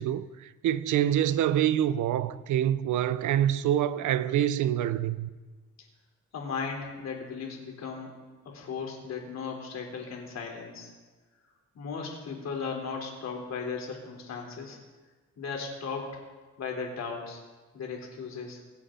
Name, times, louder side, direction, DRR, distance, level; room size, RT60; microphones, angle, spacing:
voice 1, 0.0-5.3, right 11 dB, 75° right, 0.8 m, -26 dB
voice 2, 6.3-8.2 8.4-10.9 11.7-14.8 15.4-16.2 16.6-17.4 17.7-18.6, left 5 dB, 60° left, 3.7 m, -36 dB
22.0 x 8.3 x 3.9 m
cardioid pair, 90°, 30 cm